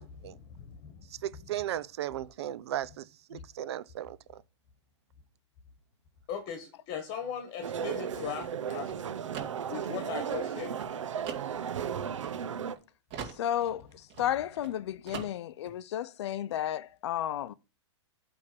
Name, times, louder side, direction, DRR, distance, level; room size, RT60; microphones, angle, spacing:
voice 1, 0.0-1.0 6.3-9.2 9.6-10.8, left 8 dB, 35° left, 1.3 m, -39 dB
voice 2, 1.2-4.4, right 12 dB, 60° right, 0.6 m, -36 dB
sound 1, 7.5-12.8 13.1-14.8 15.1-15.8, right 7 dB, 40° right, 2.5 m, -44 dB
sound 2, 7.6-12.7, right 8 dB, 90° right, 0.8 m, -35 dB
voice 3, 13.4-13.8 14.2-17.5, left 11 dB, 65° left, 0.6 m, -32 dB
8.5 x 3.5 x 6.7 m
hypercardioid pair, 145°, 15 cm